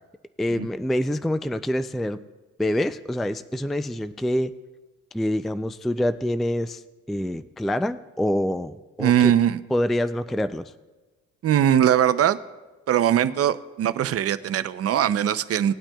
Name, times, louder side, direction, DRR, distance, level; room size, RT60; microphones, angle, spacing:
voice 1, 0.4-2.2 2.6-4.5 5.1-6.8 7.1-9.3 9.7-10.7, left 1 dB, ahead, 12 dB, 0.3 m, -26 dB
voice 2, 9.0-9.6 11.4-12.4 12.9-15.7, right 10 dB, 50° right, 13 dB, 0.6 m, -21 dB
19.0 x 8.8 x 2.3 m, 1.2 s
cardioid pair, 90°, 30 cm